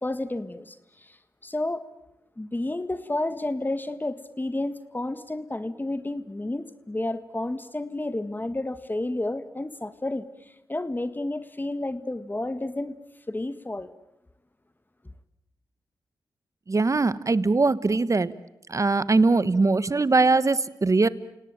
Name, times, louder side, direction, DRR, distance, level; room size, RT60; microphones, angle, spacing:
voice 1, 0.0-1.2 1.4-1.8 2.4-10.3 10.7-13.0 13.3-13.9, left 2 dB, 25° left, 12 dB, 1.7 m, -31 dB
voice 2, 16.7-18.3 18.7-21.1, right 3 dB, 40° right, 16 dB, 1.2 m, -21 dB
29.0 x 18.5 x 9.1 m, 0.90 s
cardioid pair, 45°, 8 cm